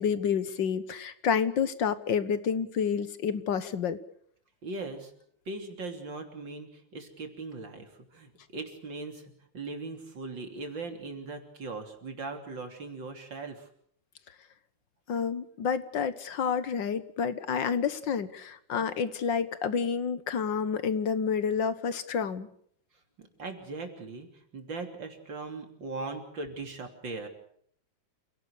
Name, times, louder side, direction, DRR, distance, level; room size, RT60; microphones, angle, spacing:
voice 1, 0.0-4.0 15.1-22.5, left 6 dB, 70° left, 13 dB, 1.9 m, -29 dB
voice 2, 4.6-5.1 5.5-13.7 23.2-27.3, right 3 dB, 70° right, 5 dB, 3.9 m, -39 dB
28.5 x 17.5 x 6.5 m, 0.65 s
omnidirectional pair, 2.1 m